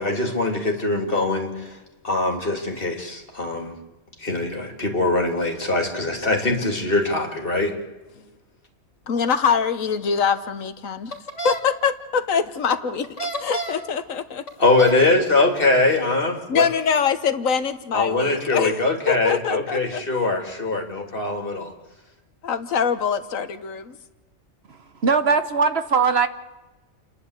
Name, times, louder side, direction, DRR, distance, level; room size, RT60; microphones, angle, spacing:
voice 1, 0.0-1.8 2.0-3.7 4.2-7.7 14.6-16.6 17.9-21.7, left 2 dB, 45° left, 2 dB, 3.4 m, -22 dB
voice 2, 9.1-11.2 11.4-13.1 13.4-14.5 16.5-18.8 19.1-20.0 22.4-24.0, left 6 dB, 85° left, 10 dB, 1.5 m, -23 dB
sound 1, 11.1-11.6 13.0-13.9 14.5-15.0, right 2 dB, 65° left, 3.2 m, -30 dB
voice 3, 24.7-26.3, right 5 dB, 55° right, 10 dB, 1.2 m, -20 dB
29.5 x 11.0 x 8.2 m, 1.1 s
omnidirectional pair, 1.3 m